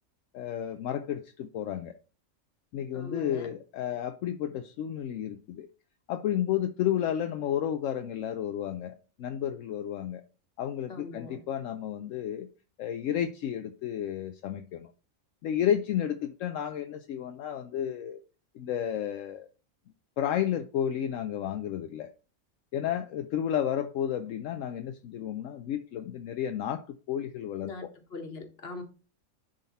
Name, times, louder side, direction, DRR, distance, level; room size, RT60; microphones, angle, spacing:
voice 1, 0.3-2.0 2.7-5.7 6.1-10.2 10.6-12.5 12.8-14.9 15.4-18.2 18.5-19.5 20.2-22.1 22.7-27.9, left 10 dB, 75° left, 0.9 m, -32 dB
voice 2, 2.9-3.5 10.9-11.4 27.6-28.8, left 3 dB, 50° left, 1.6 m, -41 dB
10.5 x 3.9 x 4.1 m
omnidirectional pair, 1.4 m